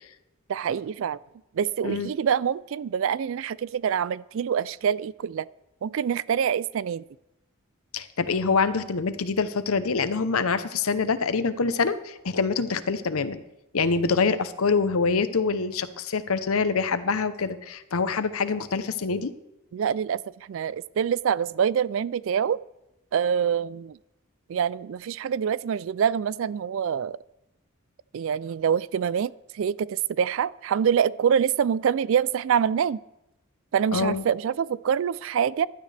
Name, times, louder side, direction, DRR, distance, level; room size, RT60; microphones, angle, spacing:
voice 1, 0.5-1.2 1.5-5.5 5.8-7.0 19.7-22.6 23.1-24.0 24.5-27.2 28.1-33.0 33.7-35.7, right 8 dB, 65° right, 21 dB, 0.3 m, -25 dB
voice 2, 7.9-13.4 13.7-19.3 33.9-34.2, left 4 dB, 75° left, 12 dB, 0.8 m, -25 dB
15.5 x 12.5 x 3.4 m, 0.90 s
head